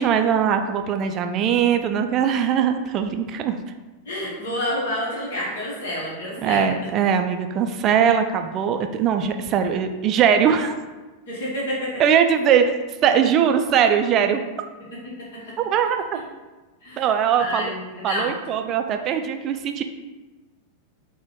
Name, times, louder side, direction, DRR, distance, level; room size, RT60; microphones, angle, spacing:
voice 1, 0.0-3.6 6.4-10.7 12.0-12.7 13.0-14.4 15.6-16.0 17.0-17.7 18.0-19.8, right 8 dB, 35° right, 6 dB, 0.3 m, -20 dB
voice 2, 4.0-6.7 11.3-12.0 14.9-15.5 16.8-17.1 17.4-18.3, left 1 dB, 60° left, -6 dB, 1.1 m, -29 dB
4.0 x 2.2 x 4.2 m, 1.2 s
figure-of-eight pair, 90°, 0 cm